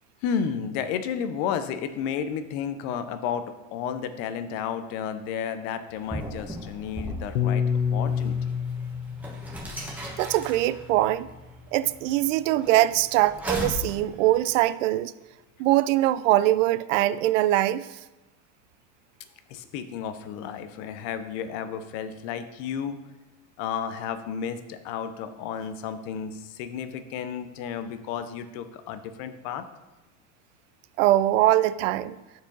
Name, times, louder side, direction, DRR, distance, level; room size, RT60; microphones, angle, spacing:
voice 1, 0.2-3.4 3.7-8.6 19.5-23.0 23.6-29.7, left 7 dB, 35° left, 10 dB, 0.5 m, -32 dB
sound 1, 5.9-14.5, equal, 5° right, 1.1 m, -38 dB
Piano, 7.4-11.8, left 7 dB, 85° left, 0.7 m, -29 dB
voice 2, 10.2-11.3 11.7-15.1 15.6-17.9 31.0-32.2, right 15 dB, 70° right, 16 dB, 0.5 m, -22 dB
7.3 x 4.7 x 5.2 m, 1.1 s
supercardioid pair, 165°, 39 cm